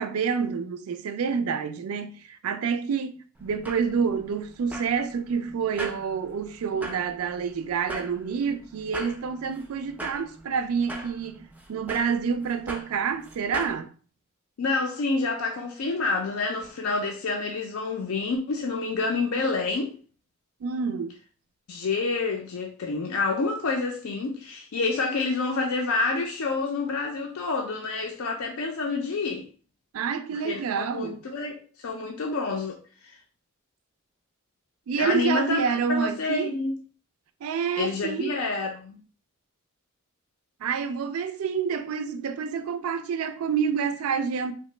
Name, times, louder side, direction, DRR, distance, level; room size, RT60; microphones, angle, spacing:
voice 1, 0.0-13.9 20.6-21.1 29.9-31.2 34.9-36.5 37.4-38.3 40.6-44.5, right 6 dB, 80° right, 0.4 m, -28 dB
sound 1, 3.4-13.8, right 1 dB, 5° right, 0.3 m, -41 dB
voice 2, 14.6-19.9 21.7-29.4 30.3-31.6 31.8-32.8 33.0-33.2 34.9-35.6 35.9-36.7 37.8-39.0, left 3 dB, 70° left, 0.4 m, -28 dB
2.9 x 2.0 x 3.1 m
head